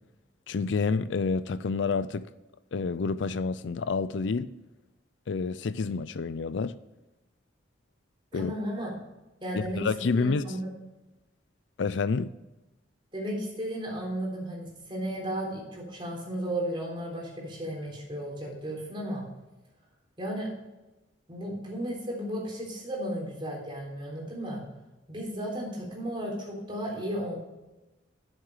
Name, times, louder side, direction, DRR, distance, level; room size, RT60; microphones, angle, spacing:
voice 1, 0.5-2.3 2.7-4.5 5.3-6.7 8.3-8.5 9.5-10.4 11.8-12.3, left 4 dB, 75° left, 0.4 m, -28 dB
voice 2, 8.3-8.9 9.4-9.8 10.1-10.7 13.1-19.3 20.2-20.5 21.3-24.7 25.1-27.4, equal, 25° right, 3.7 m, -34 dB
9.7 x 7.5 x 4.9 m
head